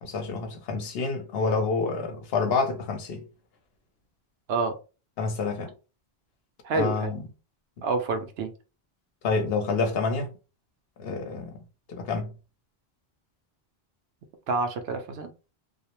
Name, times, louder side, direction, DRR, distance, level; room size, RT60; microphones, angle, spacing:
voice 1, 0.0-3.2 5.2-5.7 6.8-7.2 9.2-10.3 11.0-11.6 11.9-12.3, left 4 dB, 70° left, 0.9 m, -28 dB
voice 2, 6.6-7.1 7.8-8.5 14.5-15.3, right 4 dB, 80° right, 0.8 m, -28 dB
2.4 x 2.0 x 2.9 m
omnidirectional pair, 1.1 m